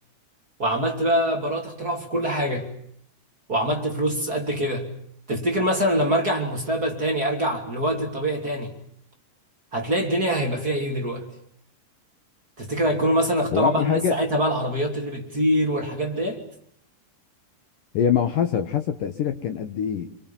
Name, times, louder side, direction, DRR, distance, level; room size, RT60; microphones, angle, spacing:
voice 1, 0.6-2.7 3.5-4.9 5.3-8.7 9.7-11.3 12.6-16.4, equal, 25° right, 1 dB, 2.9 m, -24 dB
voice 2, 13.5-14.2 17.9-20.1, left 8 dB, 65° left, 7 dB, 2.5 m, -24 dB
28.5 x 25.0 x 7.3 m, 0.70 s
omnidirectional pair, 4.9 m